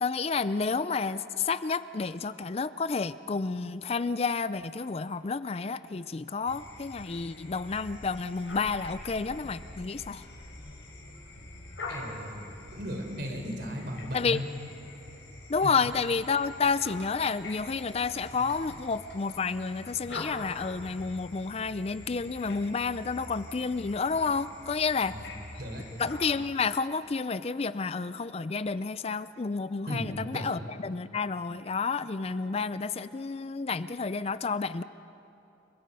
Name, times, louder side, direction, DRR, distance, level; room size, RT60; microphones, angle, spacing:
voice 1, 0.0-10.2 14.1-14.4 15.5-25.1 26.0-34.8, left 4 dB, 35° left, 14 dB, 0.4 m, -30 dB
sound 1, 6.5-26.3, left 2 dB, 85° left, 5.5 m, -45 dB
voice 2, 11.9-14.4 15.6-15.7 25.1-25.3 25.6-25.8 29.9-30.5, equal, 60° right, 2 dB, 4.1 m, -36 dB
29.5 x 23.0 x 5.5 m, 2.8 s
head